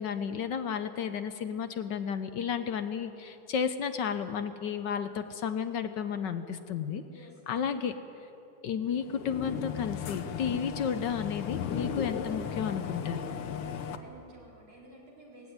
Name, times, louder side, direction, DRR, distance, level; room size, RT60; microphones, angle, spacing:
voice 1, 0.0-7.0 7.5-8.0 8.6-13.3, left 7 dB, 65° left, 9 dB, 1.3 m, -32 dB
voice 2, 7.1-7.5 13.7-15.5, right 1 dB, 70° right, -4 dB, 5.1 m, -53 dB
sound 1, 8.9-14.0, left 8 dB, 85° left, 1.9 m, -36 dB
18.5 x 16.0 x 9.5 m, 2.9 s
omnidirectional pair, 2.3 m